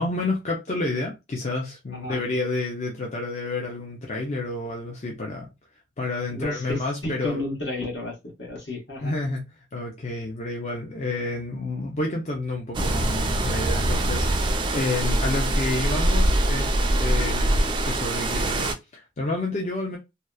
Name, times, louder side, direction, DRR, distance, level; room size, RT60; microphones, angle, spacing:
voice 1, 0.0-5.5 6.0-7.4 9.0-20.0, left 2 dB, 40° left, 0.5 m, -30 dB
voice 2, 6.3-9.1, left 1 dB, 70° left, 1.2 m, -32 dB
sound 1, 12.7-18.7, right 1 dB, 25° right, 0.3 m, -23 dB
2.8 x 2.0 x 2.2 m
head